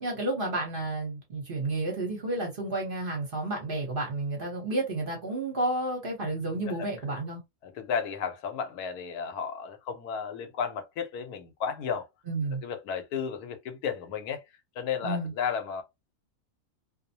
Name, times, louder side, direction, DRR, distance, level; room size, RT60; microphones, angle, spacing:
voice 1, 0.0-7.4 12.3-12.6 15.0-15.3, right 2 dB, 45° right, 0.9 m, -31 dB
voice 2, 7.6-12.0 12.6-14.4 14.8-15.8, left 7 dB, 85° left, 1.2 m, -33 dB
2.6 x 2.0 x 2.7 m
omnidirectional pair, 1.6 m